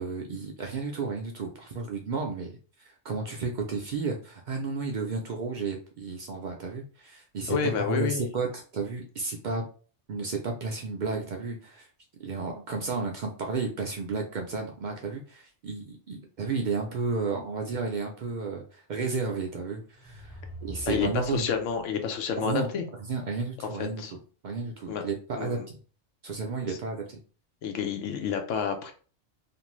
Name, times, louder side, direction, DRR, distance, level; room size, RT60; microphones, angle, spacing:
voice 1, 0.0-9.6 10.1-11.9 12.2-20.3 20.6-21.5 22.4-22.7 23.1-24.2 24.4-25.8 26.2-27.2, right 4 dB, 65° right, 1 dB, 0.4 m, -32 dB
voice 2, 7.5-8.3 20.9-22.8 23.8-24.1 24.9-25.0 25.4-25.7 26.7-26.8 27.6-28.9, left 6 dB, 90° left, 6 dB, 1.0 m, -29 dB
sound 1, 19.9-21.8, equal, 35° left, 0.7 m, -44 dB
2.5 x 2.5 x 3.0 m, 0.40 s
omnidirectional pair, 1.2 m